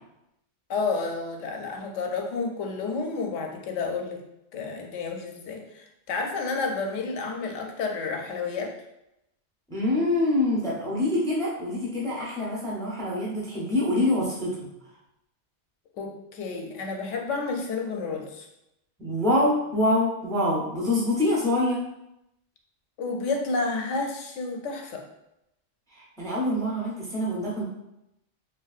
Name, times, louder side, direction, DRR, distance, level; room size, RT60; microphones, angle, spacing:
voice 1, 0.7-4.2 4.5-8.7 16.0-18.5 23.0-25.0, left 4 dB, 85° left, 2 dB, 0.9 m, -30 dB
voice 2, 9.7-14.6 19.0-21.8 25.9-27.6, left 1 dB, 5° left, -5 dB, 0.4 m, -25 dB
3.0 x 2.6 x 2.4 m, 0.86 s
omnidirectional pair, 1.2 m